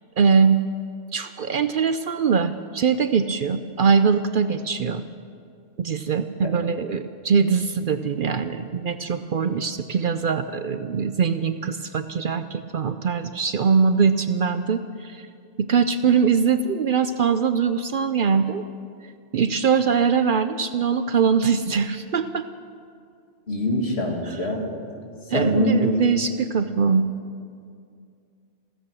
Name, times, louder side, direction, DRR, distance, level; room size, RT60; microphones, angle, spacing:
voice 1, 0.2-0.6 1.1-5.0 5.8-15.3 15.6-18.6 19.3-22.4 24.3-24.4 25.3-27.0, right 6 dB, 55° right, 10 dB, 0.7 m, -22 dB
voice 2, 23.5-24.6 25.3-26.0, left 1 dB, 65° left, 0 dB, 2.5 m, -23 dB
15.5 x 15.0 x 6.3 m, 2.3 s
omnidirectional pair, 1.2 m